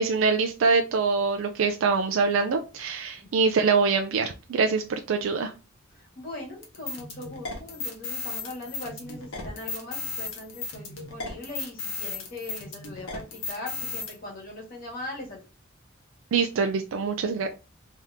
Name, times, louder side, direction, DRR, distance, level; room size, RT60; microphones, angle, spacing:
voice 1, 0.0-5.5 16.3-17.5, right 4 dB, 80° right, 5 dB, 0.4 m, -24 dB
voice 2, 5.9-15.4, left 1 dB, 45° left, -3 dB, 1.8 m, -40 dB
sound 1, 6.6-14.1, left 4 dB, 85° left, 1.2 m, -35 dB
3.6 x 2.8 x 3.4 m, 0.32 s
head